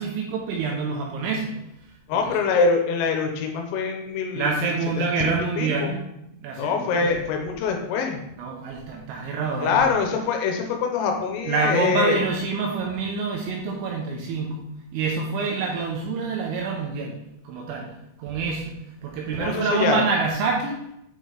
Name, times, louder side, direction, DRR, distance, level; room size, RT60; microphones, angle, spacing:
voice 1, 0.0-1.6 4.3-6.0 6.4-7.2 8.4-9.9 11.4-17.2 17.4-17.9 18.2-18.7 19.0-20.8, right 4 dB, 80° right, 0 dB, 2.8 m, -26 dB
voice 2, 2.1-4.7 5.2-5.9 6.6-8.3 9.6-12.2 19.4-20.0, left 5 dB, 85° left, 3 dB, 3.3 m, -24 dB
8.0 x 4.6 x 2.9 m, 0.81 s
omnidirectional pair, 6.0 m